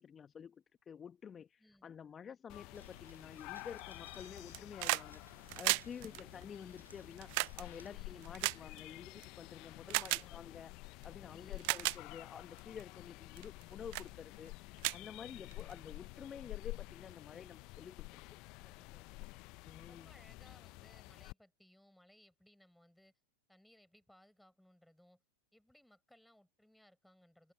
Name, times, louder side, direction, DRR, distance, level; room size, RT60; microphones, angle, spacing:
voice 1, 0.0-5.2 5.6-10.7 11.0-18.2 19.6-20.1, left 7 dB, 20° left, 1.5 m, -50 dB
sound 1, 2.5-21.3, left 24 dB, 40° left, 1.2 m, -50 dB
sound 2, 2.7-8.0, right 3 dB, 80° right, 5.7 m, -63 dB
sound 3, 4.4-5.1 5.4-9.3 9.9-10.3 11.0-11.1 11.5-12.0 12.6-12.8 13.4-13.6 13.9-14.1 14.5-14.6 14.8-15.7 16.9-17.0, right 35 dB, 45° right, 0.4 m, -36 dB
voice 2, 6.0-6.5 7.9-8.3 9.8-10.5 11.3-11.8 15.2-15.8 18.6-23.1 23.5-25.2 25.5-27.5, left 1 dB, ahead, 7.0 m, -66 dB
figure-of-eight pair, 90°, 0 cm